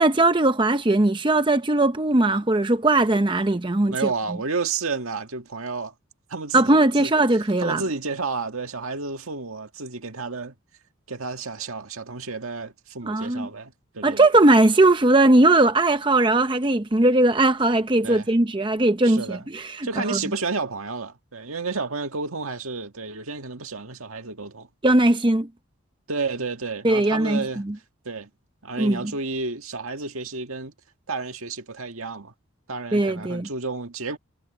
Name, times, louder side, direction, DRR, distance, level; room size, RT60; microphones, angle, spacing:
voice 1, 0.0-4.1 6.5-7.8 13.0-13.5 14.0-20.2 24.8-25.5 26.8-27.7 28.8-29.1 32.9-33.5, right 2 dB, 20° right, 0.7 m, -19 dB
voice 2, 3.9-5.9 6.3-7.1 7.6-10.6 11.1-14.3 18.0-18.3 19.0-19.4 19.8-24.7 26.1-27.6 28.1-28.3 28.6-30.7 31.1-32.3 32.7-34.2, right 4 dB, 80° right, 1.9 m, -31 dB
head